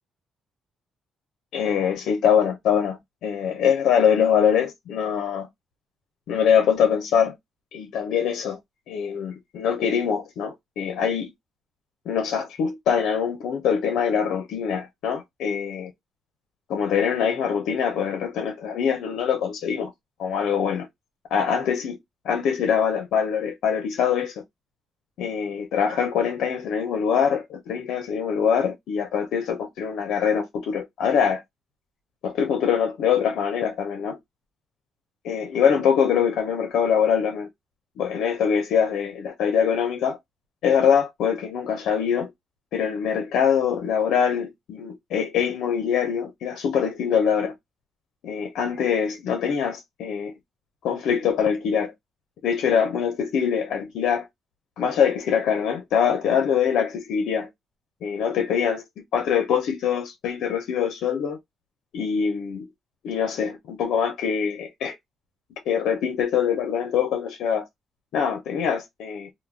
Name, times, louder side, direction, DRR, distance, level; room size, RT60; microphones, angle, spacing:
voice 1, 1.5-5.5 6.3-7.3 7.7-8.6 8.9-11.3 12.1-15.9 16.7-19.9 20.2-20.9 21.3-22.0 22.2-24.4 25.2-31.4 32.2-34.2 35.2-37.5 38.0-40.2 40.6-42.3 42.7-47.5 48.2-50.3 50.8-51.9 52.4-54.3 54.8-57.5 58.0-58.8 59.1-61.4 61.9-62.7 63.0-64.9 65.7-67.6 68.1-69.3, left 7 dB, 80° left, 0.7 m, -23 dB
2.3 x 2.2 x 3.2 m
cardioid pair, 90°, 0 cm